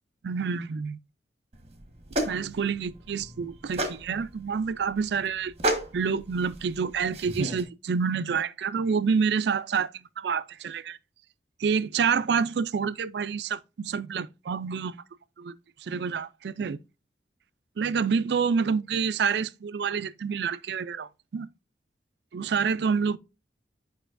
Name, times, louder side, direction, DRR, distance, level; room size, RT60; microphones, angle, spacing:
voice 1, 0.2-1.0 2.2-5.5 5.9-11.0 11.6-15.0 15.4-15.5 15.8-16.8 17.8-21.5 22.3-23.2, right 6 dB, 70° right, 0.4 m, -28 dB
sound 1, 1.5-7.6, right 1 dB, 35° right, 1.4 m, -33 dB
9.1 x 5.3 x 2.5 m
head